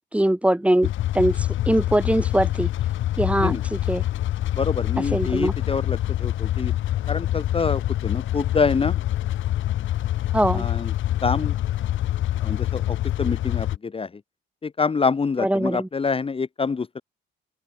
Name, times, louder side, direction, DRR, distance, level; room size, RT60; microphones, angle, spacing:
voice 1, 0.1-2.7 3.2-4.0 5.1-5.5 10.3-10.7 15.4-15.9, right 1 dB, 5° right, 2.0 m, -22 dB
sound 1, 0.8-13.8, left 13 dB, 80° left, 3.4 m, -25 dB
voice 2, 4.5-6.7 7.1-9.0 10.5-10.9 11.2-11.6 12.4-14.2 14.6-17.0, left 5 dB, 30° left, 1.1 m, -26 dB
open air
cardioid pair, 90°, 20 cm